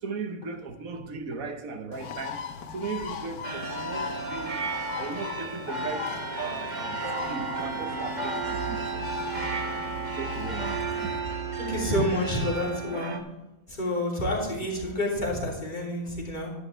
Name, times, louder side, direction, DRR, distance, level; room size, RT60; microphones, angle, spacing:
voice 1, 0.0-2.4 2.7-4.6 5.0-6.1 6.4-9.5 10.2-11.4, right 5 dB, 60° right, 1.5 m, -37 dB
Bird, 1.9-11.2, left 7 dB, 70° left, 1.4 m, -38 dB
sound 1, 3.4-13.2, right 4 dB, 35° right, 0.9 m, -34 dB
voice 2, 11.6-13.2 13.7-16.5, left 1 dB, 30° left, 3.2 m, -28 dB
12.0 x 10.5 x 3.3 m
omnidirectional pair, 1.7 m